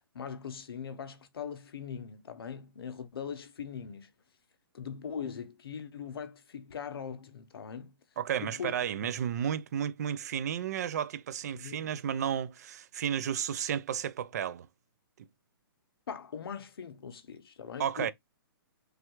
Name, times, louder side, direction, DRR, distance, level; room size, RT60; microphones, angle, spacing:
voice 1, 0.1-4.1 4.7-8.0 8.4-8.7 11.5-11.9 16.1-18.1, left 7 dB, 80° left, 0.6 m, -41 dB
voice 2, 8.2-14.7 17.8-18.1, right 9 dB, 45° right, 0.3 m, -32 dB
3.2 x 2.3 x 2.9 m
hypercardioid pair, 160°, 12 cm